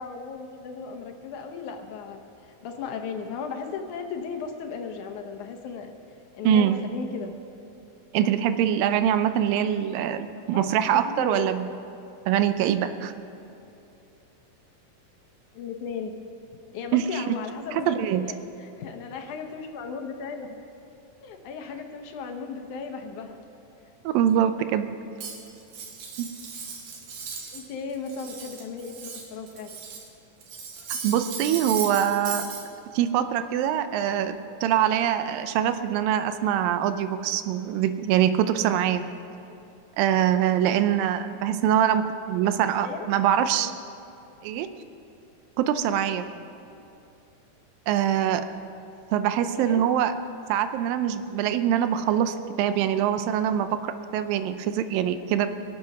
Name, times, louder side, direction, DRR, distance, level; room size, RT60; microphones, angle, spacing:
voice 1, 0.0-5.9 6.3-7.3 10.5-11.5 15.5-16.1 16.7-20.6 21.2-23.4 27.5-29.7 42.8-43.1 49.6-49.8, left 5 dB, 70° left, 5 dB, 2.2 m, -36 dB
voice 2, 6.4-6.8 8.1-11.7 12.3-13.1 16.9-17.4 17.7-18.2 24.0-24.9 26.2-26.3 31.0-32.5 32.9-34.4 34.6-39.1 40.0-43.7 44.4-44.7 45.6-46.3 47.9-48.4 49.1-50.1 50.5-53.7 54.1-55.5, right 10 dB, 90° right, 10 dB, 2.4 m, -23 dB
Cutlery silverware, 25.2-27.7 27.9-30.1 30.4-32.6, right 5 dB, 70° right, 3.1 m, -37 dB
23.5 x 7.9 x 6.0 m, 2.7 s
omnidirectional pair, 3.9 m